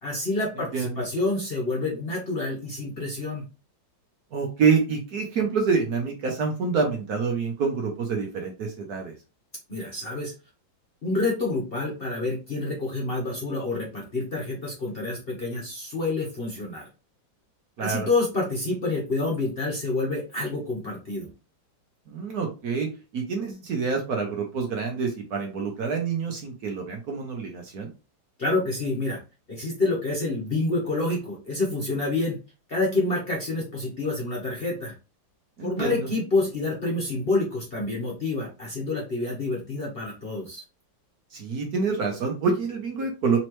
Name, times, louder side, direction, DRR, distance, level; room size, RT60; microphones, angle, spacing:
voice 1, 0.0-3.4 9.7-10.3 11.0-16.8 17.8-21.3 28.4-29.2 29.5-32.4 32.7-34.9 35.6-40.6, left 2 dB, 35° left, -3 dB, 1.0 m, -28 dB
voice 2, 4.3-9.1 17.8-18.1 22.1-22.9 23.1-27.9 35.6-36.1 41.3-43.4, right 5 dB, 60° right, 2 dB, 1.2 m, -27 dB
4.2 x 3.0 x 3.0 m, 0.31 s
omnidirectional pair, 2.1 m